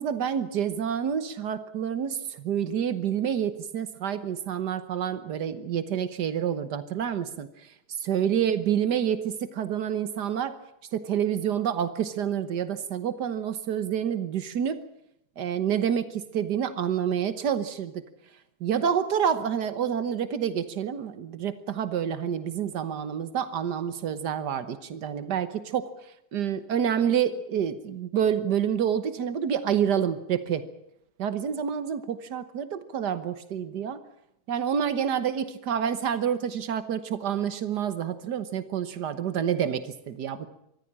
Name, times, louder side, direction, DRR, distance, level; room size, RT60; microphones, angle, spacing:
voice 1, 0.0-10.6 10.9-14.8 15.4-18.0 18.6-30.7 31.2-34.0 34.5-40.5, right 8 dB, 85° right, 12 dB, 1.7 m, -28 dB
24.0 x 14.5 x 8.7 m, 0.79 s
omnidirectional pair, 1.7 m